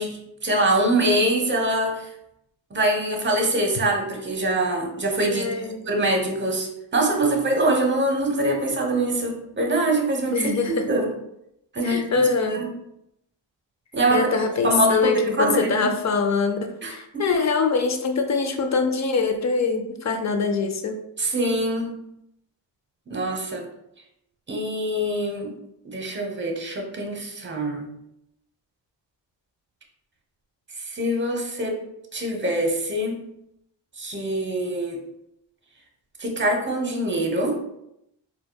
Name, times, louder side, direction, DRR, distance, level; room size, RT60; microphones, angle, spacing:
voice 1, 0.0-2.1 2.7-5.5 5.8-10.4 10.9-11.1 11.7-12.1 12.4-12.7 13.9-14.3 14.6-15.9 16.8-17.2 21.2-22.0 23.1-23.7 24.5-25.5 25.8-27.9 30.8-31.8 32.1-33.2 34.0-35.0 36.2-37.6, right 1 dB, 25° right, 2 dB, 0.8 m, -24 dB
voice 2, 5.3-5.8 10.3-10.7 11.8-12.6 14.1-16.6 16.9-21.0, left 4 dB, 40° left, 6 dB, 0.5 m, -23 dB
4.2 x 2.2 x 2.3 m, 0.80 s
cardioid pair, 65°, 44 cm